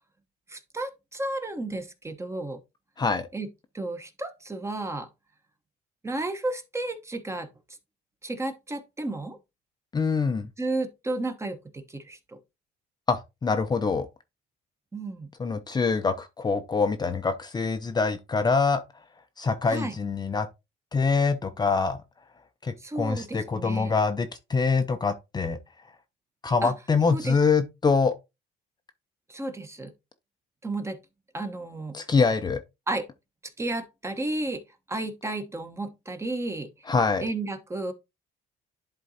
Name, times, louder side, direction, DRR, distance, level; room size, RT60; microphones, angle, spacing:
voice 1, 0.5-2.6 3.3-3.5 3.7-5.1 6.0-7.5 8.2-9.4 10.6-12.4 14.9-15.3 19.7-19.9 22.8-23.9 26.6-26.7 27.1-27.4 29.3-29.9 30.6-31.0 31.3-31.9 32.9-33.1 33.6-34.6 34.9-36.7 37.2-37.9, right 2 dB, 15° right, 1.0 m, -32 dB
voice 2, 3.0-3.3 9.9-10.5 13.1-14.1 15.4-18.8 19.4-20.5 20.9-22.0 22.6-25.6 26.4-28.2 31.9-32.6 36.9-37.3, left 4 dB, 25° left, 0.6 m, -25 dB
11.0 x 3.7 x 2.8 m
cardioid pair, 110°, 17 cm